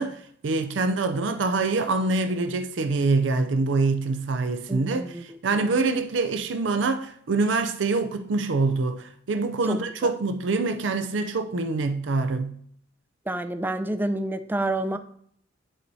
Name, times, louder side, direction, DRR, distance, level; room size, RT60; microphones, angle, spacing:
voice 1, 0.0-12.6, right 3 dB, 70° right, 0.5 m, -25 dB
voice 2, 4.7-5.2 9.7-9.8 13.3-15.0, right 1 dB, 10° right, 0.4 m, -28 dB
11.0 x 4.6 x 2.7 m
head